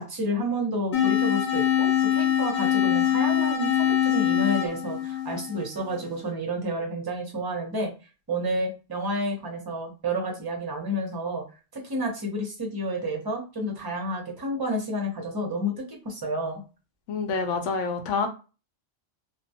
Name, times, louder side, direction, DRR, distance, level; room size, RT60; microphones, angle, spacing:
voice 1, 0.0-7.9 8.3-11.4 11.7-16.6, equal, 25° right, 0 dB, 0.5 m, -30 dB
sound 1, 0.9-6.0, left 10 dB, 50° left, 0.9 m, -23 dB
voice 2, 17.1-18.3, left 4 dB, 85° left, 5 dB, 0.9 m, -27 dB
2.2 x 2.1 x 2.7 m, 0.32 s
omnidirectional pair, 1.2 m